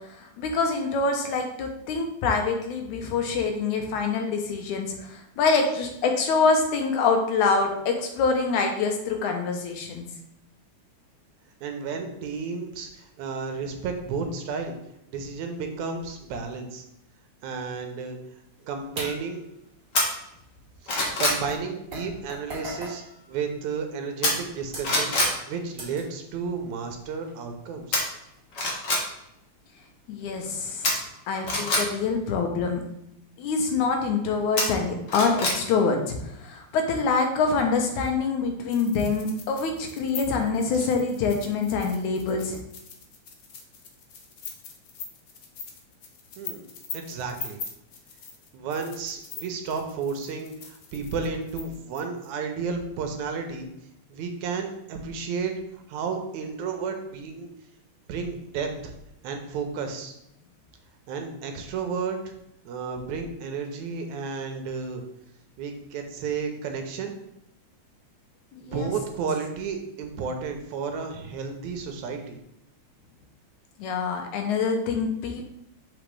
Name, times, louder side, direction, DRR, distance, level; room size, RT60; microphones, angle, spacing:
voice 1, 0.1-10.1 30.1-31.0 31.3-32.8 33.4-42.6 68.5-68.9 73.8-75.5, left 4 dB, 90° left, 3 dB, 2.4 m, -25 dB
voice 2, 11.6-14.7 15.1-16.8 17.4-18.2 18.6-19.4 20.8-23.0 23.3-25.2 25.5-28.0 40.7-40.9 46.4-46.7 46.9-47.6 48.5-53.7 54.1-55.5 55.9-57.5 58.1-58.9 59.2-60.1 61.1-62.3 62.7-65.0 65.6-67.2 68.6-72.4, right 5 dB, 85° right, 5 dB, 2.2 m, -32 dB
sound 1, 19.0-19.5 20.5-20.6 21.0-24.1 24.6-26.2 26.6-26.9 27.2-27.3 28.3-29.1 29.4-29.6 30.4-30.5, right 1 dB, 25° right, 1.9 m, -40 dB
sound 2, 19.9-20.1 20.6-21.4 24.2-24.6 24.8-25.3 27.9-28.0 28.5-29.0 30.8-31.8 34.6-35.6 35.9-36.0, left 2 dB, 45° left, 1.6 m, -24 dB
sound 3, 38.7-52.3, left 6 dB, 65° left, 1.3 m, -42 dB
6.5 x 5.0 x 3.4 m, 0.82 s
omnidirectional pair, 3.4 m